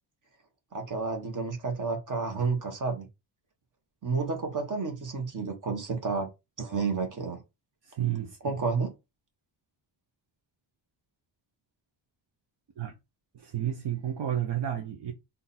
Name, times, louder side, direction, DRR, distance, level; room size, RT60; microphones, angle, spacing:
voice 1, 0.7-3.1 4.0-6.3 6.6-7.4 8.4-8.9, right 4 dB, 45° right, 1.4 m, -30 dB
voice 2, 7.8-8.6 12.8-12.9 13.3-15.1, right 11 dB, 65° right, 0.8 m, -31 dB
3.8 x 2.7 x 4.2 m
wide cardioid pair, 115°, 44 cm